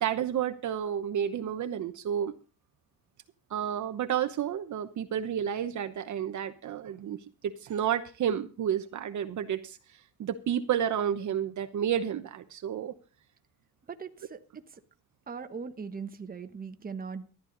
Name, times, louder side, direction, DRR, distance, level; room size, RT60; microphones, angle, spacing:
voice 1, 0.0-2.3 3.5-9.8 10.2-12.9, right 9 dB, 50° right, 1.0 m, -31 dB
voice 2, 13.9-14.6 15.3-17.3, right 5 dB, 25° right, 1.1 m, -40 dB
14.0 x 11.5 x 3.9 m
cardioid pair, 125°, 36 cm